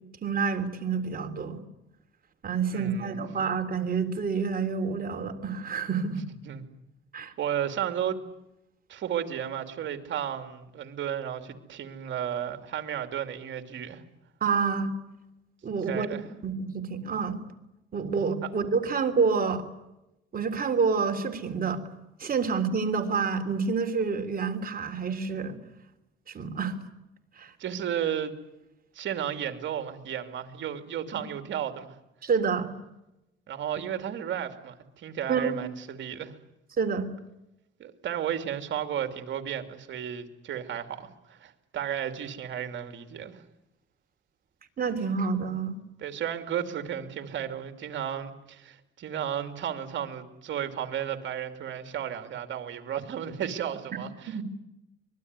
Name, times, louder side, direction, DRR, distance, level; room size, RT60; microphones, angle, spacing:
voice 1, 0.2-1.6 2.4-6.2 7.1-7.3 14.4-14.9 15.6-17.4 17.9-19.6 20.3-21.8 22.2-25.6 26.3-26.7 27.4-27.5 31.1-31.2 32.2-32.7 35.3-35.6 36.8-37.1 44.8-45.8 54.3-54.4, right 5 dB, 45° right, 3.4 m, -28 dB
voice 2, 2.7-3.3 6.4-6.7 7.4-8.2 8.9-14.0 15.8-16.3 18.4-18.5 27.6-28.3 28.9-32.0 33.5-36.3 37.8-43.4 46.0-54.4, right 9 dB, 70° right, 2.9 m, -33 dB
25.0 x 21.5 x 9.8 m
cardioid pair, 90°, 20 cm